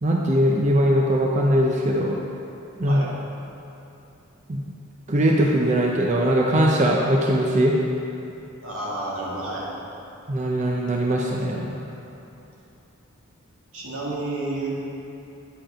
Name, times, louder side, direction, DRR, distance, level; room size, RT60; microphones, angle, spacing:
voice 1, 0.0-2.2 2.8-3.0 4.5-4.6 5.1-7.7 10.3-11.7, equal, 35° right, -1 dB, 0.5 m, -20 dB
voice 2, 2.8-3.1 8.6-9.7 13.7-14.7, right 2 dB, 85° right, -6 dB, 1.9 m, -30 dB
9.0 x 5.1 x 5.0 m, 2.9 s
head